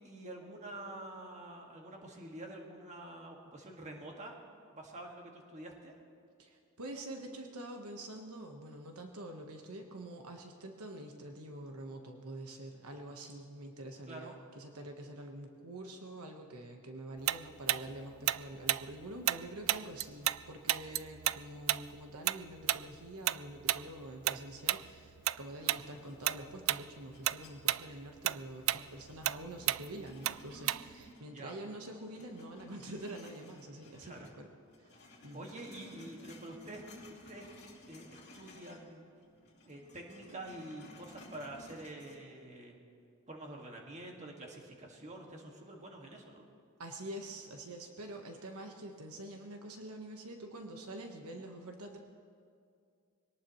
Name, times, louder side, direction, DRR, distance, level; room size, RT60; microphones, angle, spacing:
voice 1, 0.0-4.3 4.7-5.9 14.1-14.4 31.3-31.5 34.0-34.3 35.3-36.8 37.1-37.5 37.9-39.0 39.6-42.8 43.3-46.4, right 1 dB, 30° right, 0 dB, 2.0 m, -47 dB
voice 2, 6.4-34.5 34.8-35.5 46.8-52.0, right 1 dB, 80° right, 3 dB, 1.3 m, -46 dB
Tick-tock, 17.3-20.4 20.7-25.4 25.7-25.9 26.2-26.8 27.1-31.1, right 15 dB, 65° right, 0.3 m, -32 dB
sound 1, 25.6-27.9 28.3-31.6 31.9-34.4 34.6-38.9 39.2-42.2, left 1 dB, 50° left, 2.7 m, -56 dB
23.0 x 18.5 x 3.1 m, 2.3 s
head